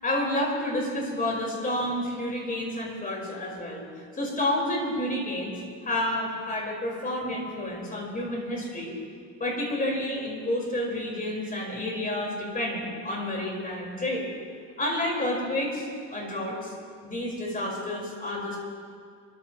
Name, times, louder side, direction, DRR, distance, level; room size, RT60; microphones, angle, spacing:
voice 1, 0.0-3.9 4.1-8.9 9.4-14.3 14.8-16.7 17.0-18.6, left 1 dB, 25° left, -2 dB, 4.7 m, -30 dB
28.0 x 14.0 x 3.0 m, 2.2 s
cardioid pair, 120°, 34 cm